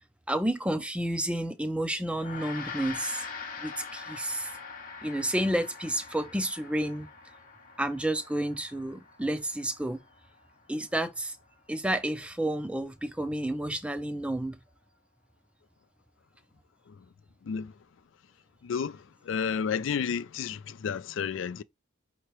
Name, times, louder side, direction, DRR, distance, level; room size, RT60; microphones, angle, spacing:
voice 1, 0.3-3.3 3.6-4.5 5.0-7.1 7.8-10.0 10.7-11.4 11.7-14.6, right 1 dB, 5° right, 0.4 m, -30 dB
Gong, 2.1-11.7, left 5 dB, 45° left, 0.9 m, -44 dB
voice 2, 17.4-17.7 18.6-21.6, left 6 dB, 75° left, 0.4 m, -32 dB
5.6 x 2.9 x 3.1 m
head